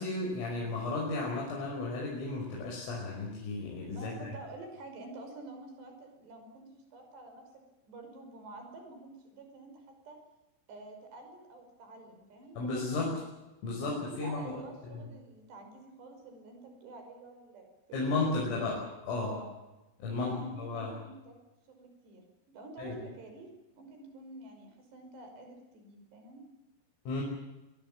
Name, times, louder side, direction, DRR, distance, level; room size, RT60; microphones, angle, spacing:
voice 1, 0.0-4.3 12.6-13.1 13.6-15.1 17.9-18.8 19.0-19.3 20.0-20.9 22.8-22.9 27.1-27.2, left 3 dB, 75° left, -3 dB, 8.0 m, -34 dB
voice 2, 3.9-10.2 10.7-13.1 13.8-18.0 18.3-18.6 19.2-19.5 20.1-21.4 21.8-23.5 23.7-26.4, right 2 dB, 55° right, 5 dB, 7.4 m, -48 dB
24.0 x 23.0 x 7.5 m, 1.0 s
omnidirectional pair, 5.9 m